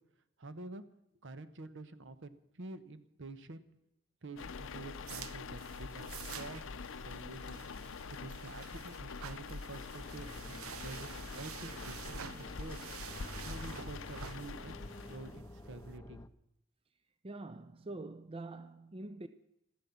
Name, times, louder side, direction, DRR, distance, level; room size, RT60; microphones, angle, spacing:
voice 1, 0.4-0.8 1.2-3.7 4.2-7.6 8.1-12.9 13.4-16.2, right 2 dB, 60° right, 1.0 m, -48 dB
sound 1, 4.4-15.4, left 5 dB, 65° left, 0.6 m, -45 dB
sound 2, 4.6-16.0, right 9 dB, 90° right, 0.5 m, -50 dB
sound 3, 10.0-16.3, left 1 dB, 15° left, 0.6 m, -51 dB
voice 2, 17.2-19.3, right 2 dB, 25° right, 0.5 m, -45 dB
13.5 x 12.5 x 7.1 m
head